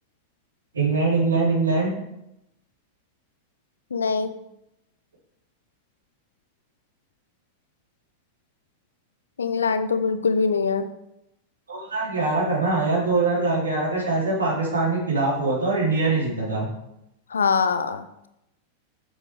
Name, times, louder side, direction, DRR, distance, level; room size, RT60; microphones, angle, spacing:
voice 1, 0.7-1.9 11.7-16.7, right 3 dB, 75° right, -5 dB, 3.4 m, -23 dB
voice 2, 3.9-4.3 9.4-10.9 17.3-18.1, left 5 dB, 70° left, 10 dB, 0.7 m, -23 dB
8.3 x 7.2 x 4.7 m, 0.83 s
figure-of-eight pair, 90°, 0 cm